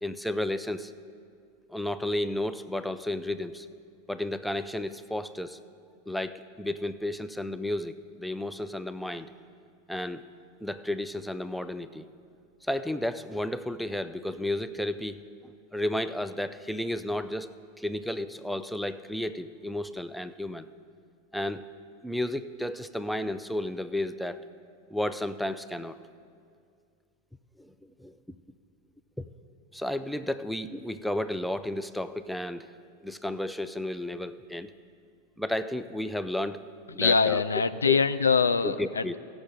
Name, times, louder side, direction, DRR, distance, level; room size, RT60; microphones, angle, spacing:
voice 1, 0.0-0.9 1.7-3.7 4.1-5.6 6.1-9.3 9.9-10.2 10.6-12.1 12.7-20.7 21.3-21.6 22.0-24.4 24.9-26.0 27.6-27.7 28.0-28.1 29.2-29.3 29.7-32.7 33.0-34.7 35.4-36.6 36.9-37.4 37.8-38.0 38.6-39.2, left 1 dB, ahead, 12 dB, 0.4 m, -32 dB
voice 2, 37.0-39.2, left 5 dB, 80° left, 12 dB, 0.3 m, -24 dB
16.5 x 6.3 x 5.0 m, 2.2 s
figure-of-eight pair, 85°, 0 cm